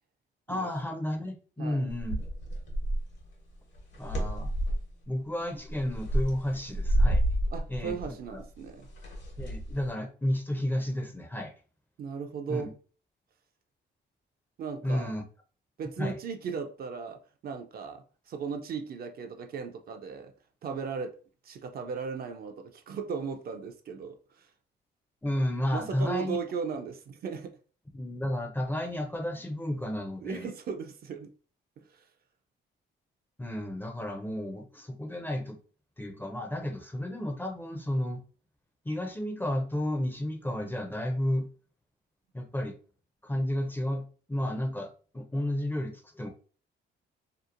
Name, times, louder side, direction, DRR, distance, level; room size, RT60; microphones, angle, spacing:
voice 1, 0.5-2.2 4.0-4.5 5.1-7.2 7.7-8.4 9.4-11.5 12.5-12.7 14.8-15.2 16.0-16.2 25.2-26.4 27.9-30.5 33.4-35.6 36.0-38.2 38.8-41.5 42.3-42.8 43.2-44.0 44.3-46.3, left 1 dB, 10° left, 0.4 m, -32 dB
sound 1, 1.9-3.2 3.7-4.9 5.6-9.9, right 1 dB, 70° left, 1.1 m, -29 dB
voice 2, 7.5-8.9 12.0-12.7 14.6-15.1 15.8-20.3 20.6-21.1 21.4-24.5 25.7-27.6 30.2-31.3 31.8-32.0, right 5 dB, 50° right, 0.4 m, -37 dB
2.8 x 2.0 x 2.4 m
cardioid pair, 90°, 20 cm